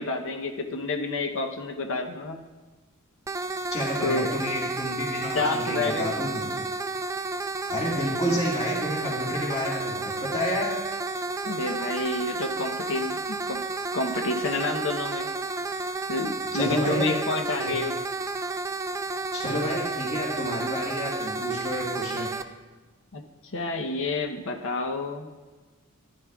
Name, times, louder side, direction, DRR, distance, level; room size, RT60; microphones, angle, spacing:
voice 1, 0.0-2.5 4.0-4.3 5.3-6.1 11.5-13.6 13.9-15.3 16.1-17.9 23.1-25.3, left 2 dB, 65° left, 4 dB, 0.8 m, -29 dB
sound 1, 3.3-22.4, right 3 dB, 15° right, 0.3 m, -31 dB
voice 2, 3.7-6.7 7.7-10.7 16.5-17.2 17.6-17.7 19.3-22.3, equal, 30° left, -4 dB, 2.0 m, -30 dB
14.0 x 10.5 x 2.4 m, 1.3 s
head